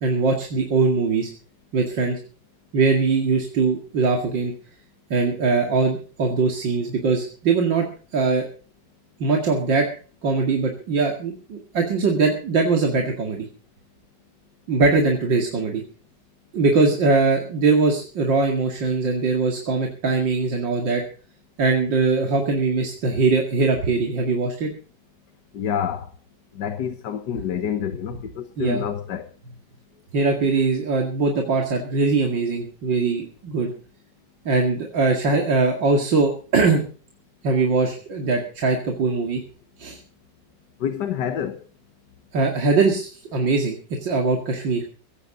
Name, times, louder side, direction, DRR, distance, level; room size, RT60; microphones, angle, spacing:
voice 1, 0.0-1.3 1.7-2.2 2.7-4.5 5.1-7.9 8.1-8.5 9.2-9.9 10.2-13.5 14.7-15.8 16.5-21.0 21.6-24.7 28.6-28.8 30.1-33.7 34.5-36.8 37.4-39.4 39.8-40.0 42.3-44.8, right 4 dB, 85° right, 2.9 m, -21 dB
voice 2, 25.5-26.1 26.5-29.3 40.8-41.7, left 8 dB, 70° left, 1.7 m, -28 dB
17.5 x 15.0 x 3.9 m
omnidirectional pair, 1.9 m